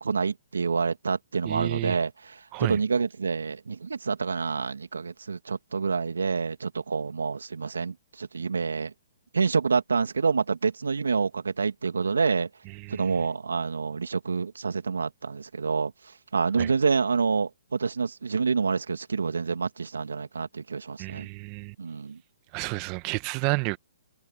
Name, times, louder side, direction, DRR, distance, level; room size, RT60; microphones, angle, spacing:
voice 1, 0.0-8.9 9.3-12.5 12.9-15.9 16.3-21.3 21.8-22.2, right 5 dB, 80° right, 2.6 m, -27 dB
voice 2, 1.4-2.0 2.5-2.8 12.7-13.1 16.6-16.7 21.0-21.7 22.5-23.8, right 28 dB, 35° right, 1.4 m, -30 dB
hypercardioid pair, 130°, 0 cm